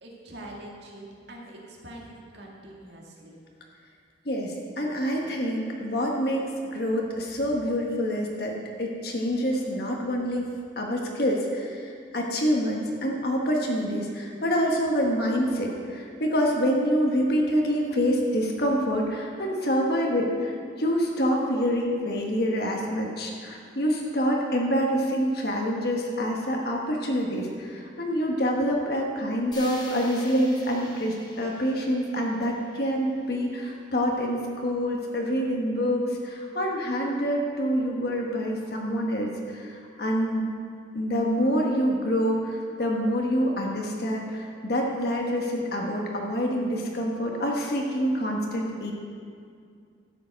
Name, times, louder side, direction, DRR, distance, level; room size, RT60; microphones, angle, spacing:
voice 1, 0.0-3.4 7.3-7.5, right 1 dB, 65° right, -2 dB, 2.1 m, -44 dB
voice 2, 4.2-40.5 40.9-48.9, equal, 55° left, 0 dB, 1.3 m, -26 dB
sound 1, 29.5-33.6, left 1 dB, 25° left, 2.7 m, -46 dB
12.5 x 8.5 x 5.2 m, 2.3 s
head